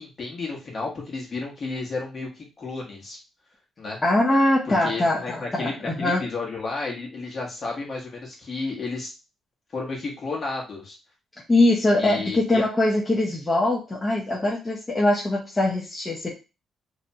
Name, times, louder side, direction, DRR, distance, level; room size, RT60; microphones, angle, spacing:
voice 1, 0.0-3.2 3.8-4.0 4.7-9.1 9.7-11.0 11.9-12.6, left 3 dB, 40° left, -2 dB, 1.1 m, -32 dB
voice 2, 4.0-6.3 11.5-16.3, left 1 dB, 20° left, -4 dB, 0.6 m, -22 dB
2.6 x 2.1 x 2.6 m, 0.29 s
cardioid pair, 90°, 0 cm